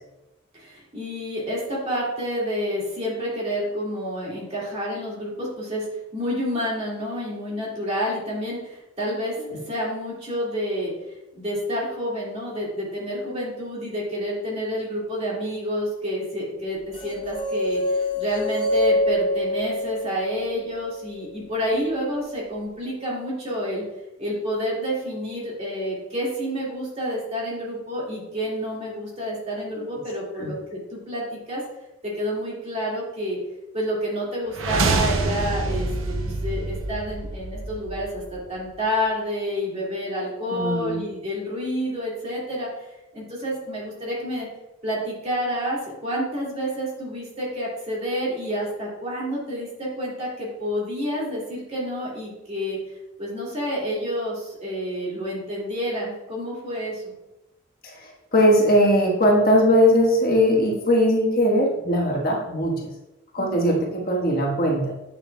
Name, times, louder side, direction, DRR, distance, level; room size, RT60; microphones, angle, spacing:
voice 1, 0.5-9.4 9.7-10.9 11.4-23.8 24.2-31.6 32.0-33.4 33.7-42.7 43.1-44.5 44.8-52.8 53.2-57.1 63.4-63.6, equal, 30° right, -5 dB, 2.1 m, -29 dB
sound 1, 17.0-21.1, left 1 dB, 25° left, 0.5 m, -25 dB
sound 2, 34.5-38.5, right 3 dB, 75° right, 0.6 m, -26 dB
voice 2, 40.5-41.0 57.8-62.9 63.3-64.9, equal, 45° left, -2 dB, 1.4 m, -20 dB
8.3 x 6.7 x 2.3 m, 0.96 s
head